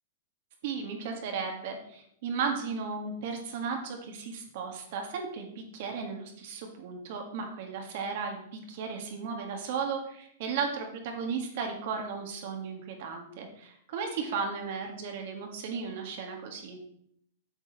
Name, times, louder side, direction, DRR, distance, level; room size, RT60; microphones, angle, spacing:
voice 1, 0.6-16.8, right 5 dB, 50° right, 2 dB, 1.7 m, -35 dB
8.0 x 4.7 x 7.0 m, 0.70 s
supercardioid pair, 170°, 0 cm